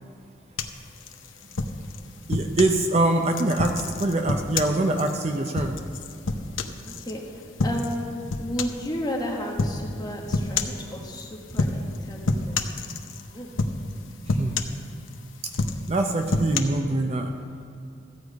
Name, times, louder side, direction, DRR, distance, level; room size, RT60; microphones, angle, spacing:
sound 1, 0.6-2.8 3.3-7.1 7.6-8.0 8.3-8.9 9.6-9.8 10.3-10.8 11.5-12.0 12.3-13.2 13.6-14.0 14.3-15.1 15.5-16.6, left 3 dB, 85° left, 0.7 m, -28 dB
voice 1, 2.3-5.8 14.3-14.6 15.9-17.3, right 2 dB, 35° right, 4 dB, 0.5 m, -24 dB
voice 2, 6.8-7.2 7.6-8.1 8.4-12.6 13.3-13.5, equal, 20° left, -1 dB, 1.4 m, -33 dB
14.0 x 4.9 x 8.2 m, 2.5 s
head